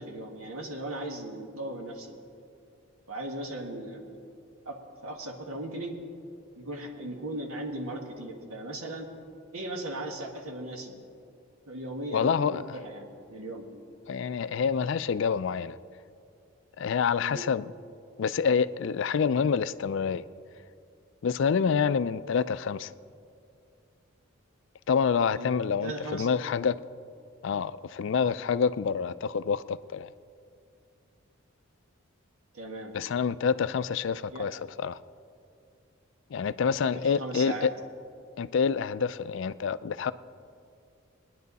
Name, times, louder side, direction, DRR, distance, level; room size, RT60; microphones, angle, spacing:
voice 1, 0.0-2.2 3.1-4.0 4.6-6.0 6.5-9.1 9.5-10.9 11.7-13.6 17.2-17.5 25.4-25.5 25.8-26.3 32.5-32.9 34.3-34.5 36.8-37.7, right 1 dB, 80° right, 2 dB, 1.7 m, -37 dB
voice 2, 12.1-12.8 14.1-15.8 16.8-17.6 18.2-20.3 21.2-22.9 24.9-26.8 27.4-30.1 32.9-35.0 36.3-37.7 38.4-40.1, left 6 dB, 60° left, 15 dB, 0.3 m, -27 dB
20.0 x 10.0 x 4.1 m, 2.4 s
head